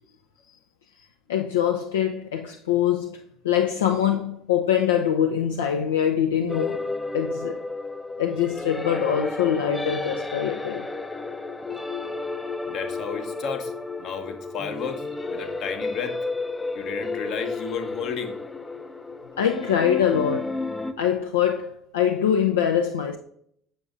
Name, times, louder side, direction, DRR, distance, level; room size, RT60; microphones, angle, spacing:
voice 1, 1.3-6.8 7.1-7.6 8.2-10.9 19.4-20.6 21.0-23.2, left 9 dB, 75° left, 0.4 m, -23 dB
sound 1, 6.5-20.9, left 3 dB, 15° left, 0.5 m, -32 dB
voice 2, 12.7-13.7 14.0-16.2 16.7-18.4, left 6 dB, 55° left, 0.9 m, -32 dB
7.0 x 6.8 x 2.5 m
figure-of-eight pair, 60°, 0 cm